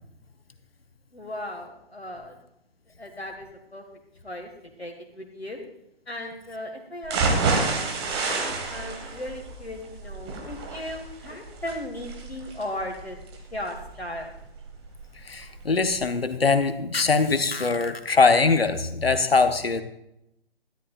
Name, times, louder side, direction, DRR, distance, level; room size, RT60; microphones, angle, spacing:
voice 1, 1.1-2.4 3.0-3.8 4.2-4.5 4.8-5.6 6.1-7.9 8.2-13.2 13.5-14.3, left 1 dB, 90° left, 2 dB, 1.8 m, -37 dB
sound 1, 7.0-15.0 15.4-15.5 15.9-16.0, right 3 dB, 25° right, 1.8 m, -29 dB
voice 2, 15.2-19.8, left 4 dB, 70° left, 9 dB, 1.1 m, -22 dB
18.5 x 13.0 x 2.4 m, 0.82 s
figure-of-eight pair, 135°, 31 cm